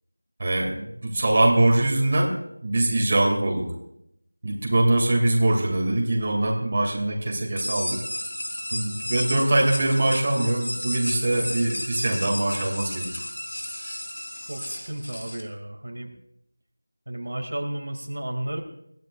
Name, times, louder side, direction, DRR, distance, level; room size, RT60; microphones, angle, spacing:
voice 1, 0.4-2.3 2.6-3.7 4.4-8.0 8.7-13.1, right 1 dB, 30° right, 0 dB, 2.4 m, -23 dB
sound 1, 7.6-15.4, left 1 dB, 80° left, 3.9 m, -33 dB
voice 2, 14.5-16.1 17.1-18.6, right 1 dB, 65° right, 3 dB, 2.4 m, -33 dB
22.5 x 15.0 x 2.5 m, 0.79 s
figure-of-eight pair, 175°, 0 cm